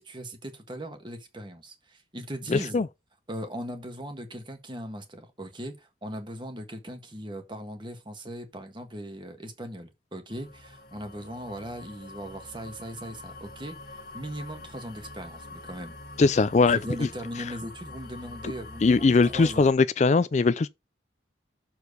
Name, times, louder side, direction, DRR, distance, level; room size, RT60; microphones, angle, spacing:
voice 1, 0.0-2.9 3.3-16.0 16.7-19.7, equal, 25° right, 1.5 m, -39 dB
voice 2, 2.5-2.9 16.2-17.1 18.8-20.7, left 4 dB, 40° left, 0.3 m, -21 dB
sound 1, 10.3-19.7, left 2 dB, 55° left, 1.5 m, -45 dB
6.9 x 4.5 x 6.6 m
head